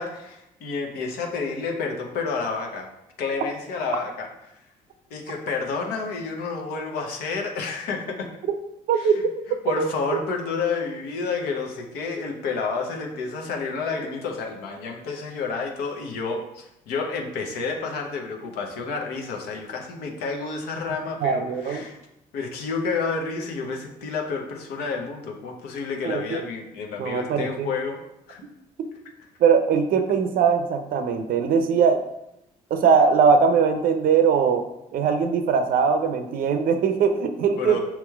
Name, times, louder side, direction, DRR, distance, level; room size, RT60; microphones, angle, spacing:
voice 1, 0.0-2.9 3.2-4.3 5.1-8.3 8.9-9.1 9.6-22.0 22.3-28.0 28.3-28.4 37.6-37.8, left 4 dB, 80° left, 2 dB, 0.7 m, -30 dB
voice 2, 8.9-9.3 9.7-9.9 21.2-21.8 26.0-26.4 27.0-27.7 29.4-32.0 32.7-34.7 34.9-37.8, right 6 dB, 60° right, 8 dB, 0.5 m, -21 dB
5.6 x 3.0 x 2.3 m, 0.84 s
supercardioid pair, 65°, 16 cm